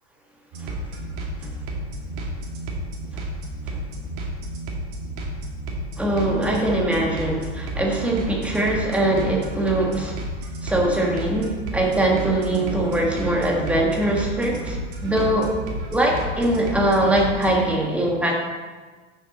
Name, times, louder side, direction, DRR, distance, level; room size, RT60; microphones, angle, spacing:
sound 1, 0.5-17.7, right 1 dB, 40° right, 2.0 m, -32 dB
voice 1, 6.0-10.2 10.6-14.8 15.0-15.5 15.9-18.3, right 1 dB, 5° right, -1 dB, 1.6 m, -22 dB
9.2 x 6.9 x 4.2 m, 1.4 s
supercardioid pair, 130°, 35 cm